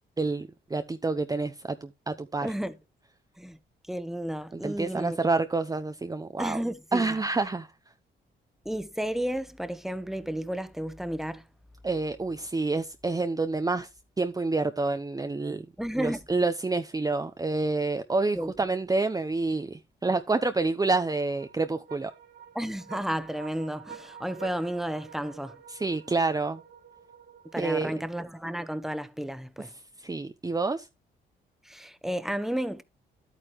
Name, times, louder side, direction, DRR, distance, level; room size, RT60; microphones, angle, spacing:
voice 1, 0.2-2.5 4.5-6.6 6.9-7.7 11.8-13.9 14.2-15.7 16.0-22.1 25.7-26.6 27.6-27.9 30.0-30.9, right 3 dB, 20° right, 0.8 m, -28 dB
voice 2, 2.4-2.8 3.4-3.6 3.9-5.2 6.4-7.1 8.6-11.4 15.8-16.2 18.3-18.5 22.5-25.6 27.5-29.7 31.6-32.8, equal, ahead, 1.3 m, -32 dB
sound 1, 20.9-28.4, right 7 dB, 60° right, 1.9 m, -49 dB
11.0 x 9.1 x 3.2 m
supercardioid pair, 65°, 20 cm